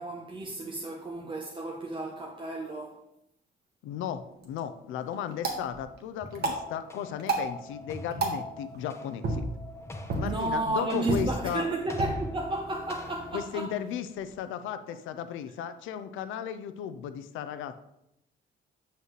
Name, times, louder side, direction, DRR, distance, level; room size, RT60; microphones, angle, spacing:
voice 1, 0.0-3.0 10.2-13.7, right 2 dB, 25° right, 0 dB, 0.8 m, -32 dB
voice 2, 3.8-9.5 10.2-11.7 13.3-17.8, left 9 dB, 90° left, 11 dB, 0.5 m, -35 dB
sound 1, 4.2-14.3, right 2 dB, 55° right, 1.4 m, -36 dB
sound 2, 6.2-13.5, left 1 dB, 15° left, 0.8 m, -44 dB
7.6 x 5.7 x 3.1 m, 0.83 s
cardioid pair, 90°, 20 cm